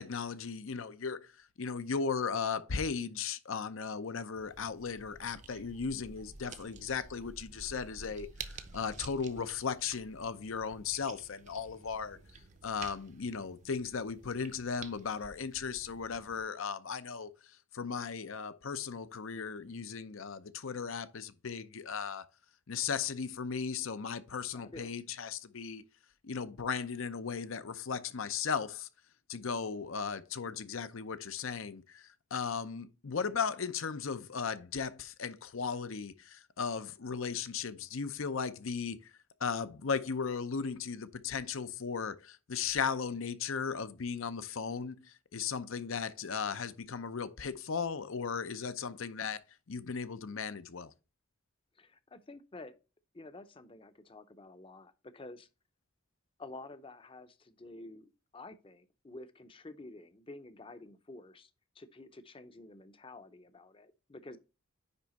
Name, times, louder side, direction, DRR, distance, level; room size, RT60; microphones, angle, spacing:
voice 1, 0.0-12.2 12.6-17.3 17.7-22.3 22.7-25.8 26.2-28.9 29.3-39.1 39.4-49.4 49.7-50.9, left 6 dB, 75° left, 0.7 m, -36 dB
sound 1, 4.4-16.4, right 5 dB, 35° right, 0.7 m, -51 dB
voice 2, 24.5-25.0 51.7-52.8 53.1-55.5 56.4-64.4, left 2 dB, 25° left, 0.6 m, -50 dB
9.7 x 3.5 x 4.1 m
head